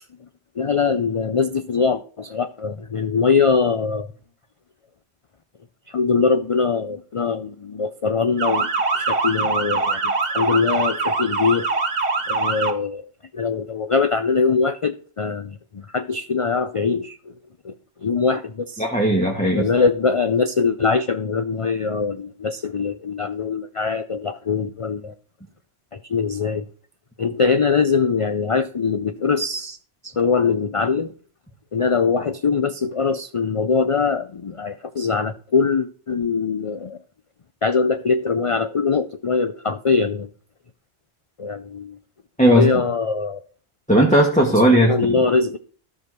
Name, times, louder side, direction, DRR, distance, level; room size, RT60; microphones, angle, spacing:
voice 1, 0.6-4.1 5.9-11.7 12.3-17.2 17.6-17.7 18.0-18.8 19.6-25.1 25.9-26.7 27.2-29.8 30.0-31.1 31.7-37.0 37.6-40.3 41.4-42.0 42.5-43.4 44.9-45.6, left 5 dB, 45° left, 0.5 m, -22 dB
Motor vehicle (road) / Siren, 8.4-12.7, right 3 dB, 60° right, 1.6 m, -23 dB
voice 2, 18.8-19.7 42.4-42.7 43.9-45.2, right 1 dB, 5° left, 1.5 m, -16 dB
14.0 x 4.8 x 6.1 m
omnidirectional pair, 1.1 m